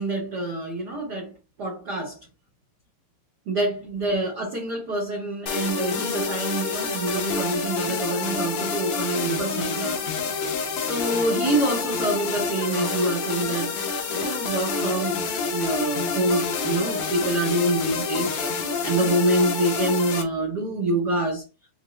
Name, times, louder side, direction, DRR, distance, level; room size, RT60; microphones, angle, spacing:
voice 1, 0.0-1.3 1.6-2.2 3.5-10.0 10.8-13.8 14.1-15.2 15.5-21.4, right 1 dB, 85° right, 0.9 m, -26 dB
sound 1, 5.5-20.2, left 5 dB, 85° left, 1.2 m, -28 dB
5.0 x 2.0 x 3.1 m
omnidirectional pair, 3.4 m